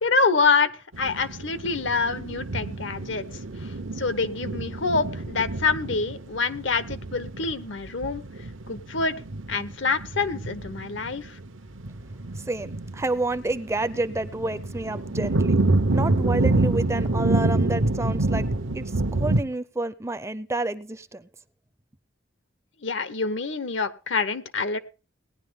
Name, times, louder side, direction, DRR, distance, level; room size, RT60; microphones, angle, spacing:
voice 1, 0.0-0.7 1.0-3.2 4.0-8.2 8.7-9.2 9.5-11.4 22.8-24.8, left 4 dB, 70° left, 13 dB, 1.0 m, -26 dB
sound 1, 0.9-19.4, right 2 dB, 80° right, 1.0 m, -27 dB
voice 2, 12.5-15.5 15.9-18.4 18.7-18.8 19.1-21.3, right 2 dB, 15° right, 12 dB, 0.5 m, -29 dB
18.0 x 10.5 x 3.6 m, 0.35 s
head